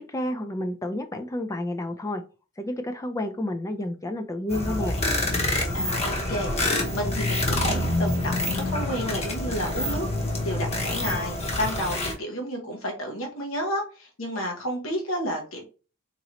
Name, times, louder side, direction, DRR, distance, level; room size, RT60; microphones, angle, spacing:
voice 1, 0.0-2.2 2.6-5.0, left 1 dB, 15° left, 7 dB, 0.3 m, -30 dB
sound 1, 4.5-12.1, left 1 dB, 30° left, 0.9 m, -27 dB
voice 2, 5.7-10.1 10.4-15.6, equal, 70° left, 1 dB, 0.9 m, -31 dB
3.8 x 2.9 x 3.0 m, 0.35 s
head